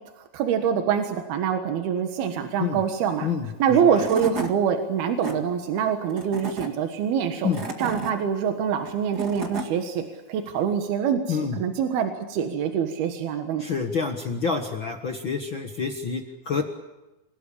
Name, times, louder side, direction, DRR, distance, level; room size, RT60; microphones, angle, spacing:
voice 1, 0.2-3.3 3.6-7.5 7.8-10.0 10.3-13.6, right 7 dB, 85° right, 5 dB, 3.5 m, -25 dB
voice 2, 3.2-3.9 7.4-7.6 11.3-11.6 13.6-16.6, left 5 dB, 55° left, 4 dB, 1.4 m, -28 dB
Tools / Wood, 3.6-3.7 3.9-4.5 5.0-5.3 6.1-6.7 7.3-8.1 8.9-9.7, right 4 dB, 35° right, 2.0 m, -32 dB
28.0 x 17.0 x 8.6 m, 1.0 s
omnidirectional pair, 4.3 m